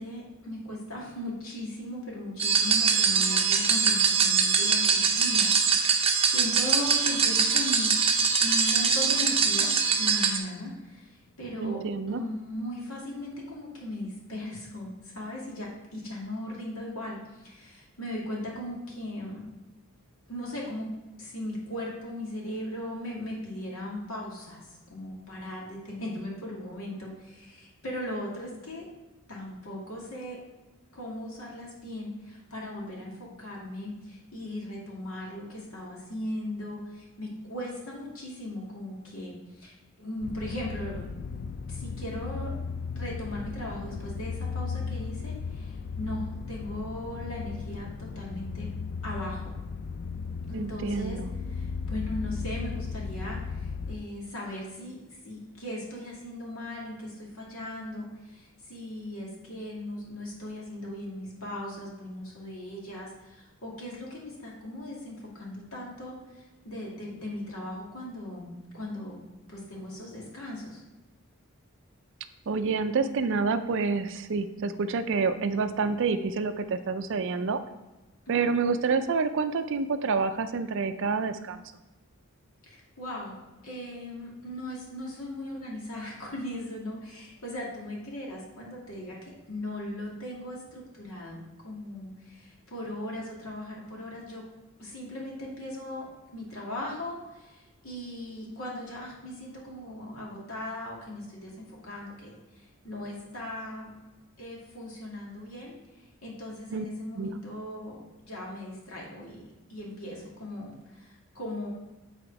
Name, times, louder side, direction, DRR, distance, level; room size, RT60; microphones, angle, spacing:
voice 1, 0.0-8.0 8.4-11.8 12.1-19.4 20.3-20.9 21.2-28.8 29.3-30.4 30.9-41.4 41.7-42.5 43.0-48.7 49.0-49.5 50.5-51.2 51.5-55.0 55.2-69.2 69.5-70.8 78.3-78.8 82.6-83.4 83.6-94.4 94.8-104.0 104.4-105.7 106.2-108.0 108.2-111.7, left 1 dB, 70° left, -3 dB, 2.4 m, -38 dB
sound 1, 2.4-10.4, right 5 dB, 25° right, 0.7 m, -23 dB
voice 2, 11.6-12.2 50.5-51.3 72.5-77.6 78.3-81.6 106.7-106.9 107.2-107.4, right 4 dB, 60° right, 10 dB, 0.4 m, -28 dB
sound 2, 40.2-54.0, left 5 dB, 45° left, 0.3 m, -36 dB
8.9 x 4.3 x 4.7 m, 1.1 s
head